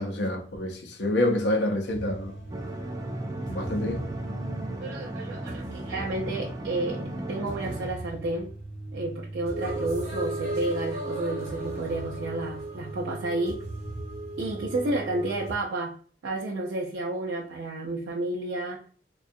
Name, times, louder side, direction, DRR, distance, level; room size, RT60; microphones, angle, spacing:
voice 1, 0.0-2.3 3.5-4.1, left 1 dB, 75° left, 0.5 m, -27 dB
sound 1, 1.9-15.5, right 2 dB, 40° right, 1.0 m, -37 dB
sound 2, 2.5-7.9, right 1 dB, 20° right, 0.3 m, -36 dB
voice 2, 4.8-7.0 7.3-8.5 8.9-13.6 14.4-16.0 16.2-18.8, right 2 dB, 90° right, 0.4 m, -31 dB
2.6 x 2.2 x 2.5 m
head